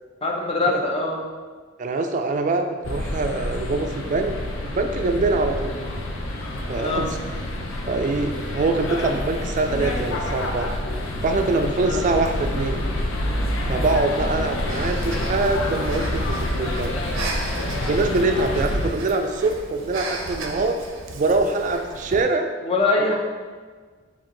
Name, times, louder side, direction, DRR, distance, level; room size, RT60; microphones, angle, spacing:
voice 1, 0.2-1.2 6.8-7.1 11.8-12.0 22.6-23.2, left 2 dB, 30° left, -1 dB, 0.5 m, -23 dB
voice 2, 1.8-4.4 4.6-5.8 6.7-7.2 7.9-10.7 11.2-12.8 13.7-16.9 17.9-20.8 21.1-22.5 23.0-23.1, right 3 dB, 40° right, 5 dB, 0.3 m, -24 dB
sound 1, 2.8-18.9, left 1 dB, 90° left, 0.6 m, -27 dB
Breathing, 14.7-22.2, right 2 dB, 85° right, 0.6 m, -35 dB
4.4 x 2.6 x 3.8 m, 1.5 s
head